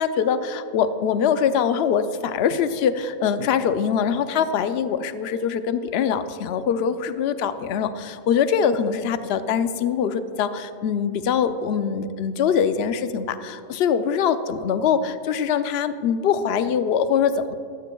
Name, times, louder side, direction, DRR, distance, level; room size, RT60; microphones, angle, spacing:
voice 1, 0.0-17.6, left 7 dB, 60° left, 11 dB, 0.8 m, -23 dB
14.5 x 14.0 x 2.3 m, 2.5 s
omnidirectional pair, 1.3 m